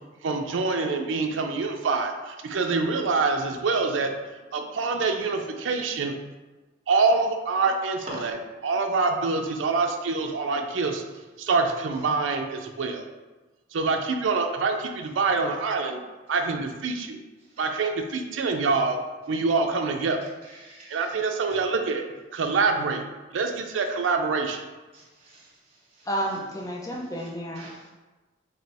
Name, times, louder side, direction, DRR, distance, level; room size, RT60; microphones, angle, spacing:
voice 1, 0.2-4.1 4.5-6.1 6.9-8.4 8.6-11.0 11.4-13.0 13.7-16.0 16.3-17.2 17.6-19.0 19.3-20.2 20.9-22.0 22.3-23.0 23.3-24.6, right 4 dB, 85° right, 4 dB, 0.4 m, -25 dB
voice 2, 20.5-21.1 21.5-21.6 24.9-25.5 25.9-26.1 27.2-27.3 27.6-27.9, equal, 35° right, -8 dB, 0.9 m, -43 dB
voice 3, 26.1-27.7, equal, 20° left, -1 dB, 0.5 m, -31 dB
3.2 x 2.7 x 4.1 m, 1.2 s
head